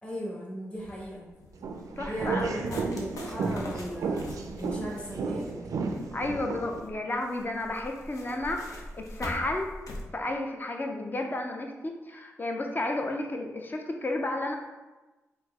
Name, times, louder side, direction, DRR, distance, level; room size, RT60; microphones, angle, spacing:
voice 1, 0.0-1.3 2.1-4.3 4.5-5.6, equal, 20° left, -4 dB, 1.2 m, -37 dB
sound 1, 0.8-10.0, left 1 dB, 75° left, 0.7 m, -43 dB
sound 2, 1.6-6.8, right 4 dB, 80° right, 0.4 m, -33 dB
voice 2, 2.0-2.7 6.1-9.7 10.1-14.5, left 2 dB, 35° left, 3 dB, 0.6 m, -32 dB
4.4 x 2.1 x 3.5 m, 1.1 s
cardioid pair, 50°, 6 cm